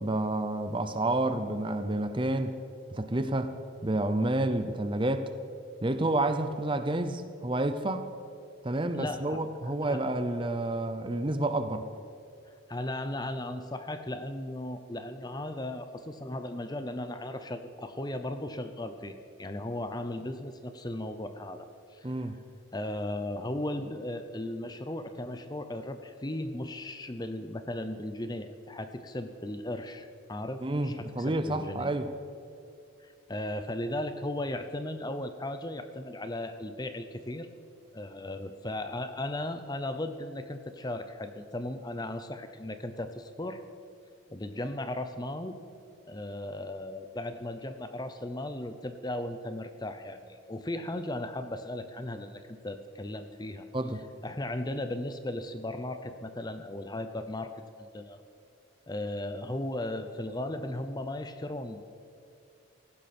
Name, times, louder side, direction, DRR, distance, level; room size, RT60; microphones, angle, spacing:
voice 1, 0.0-2.6 2.9-3.5 3.8-5.3 5.8-8.1 8.6-11.9 22.0-22.4 30.6-32.1 53.7-54.0, right 2 dB, 25° right, 9 dB, 0.6 m, -29 dB
voice 2, 8.9-10.1 12.5-22.1 22.7-31.9 33.0-37.5 37.9-43.6 44.3-45.6 46.1-53.6 54.2-57.5 57.9-58.2 58.9-62.0, left 1 dB, 20° left, 9 dB, 0.7 m, -36 dB
17.5 x 15.5 x 4.4 m, 2.5 s
head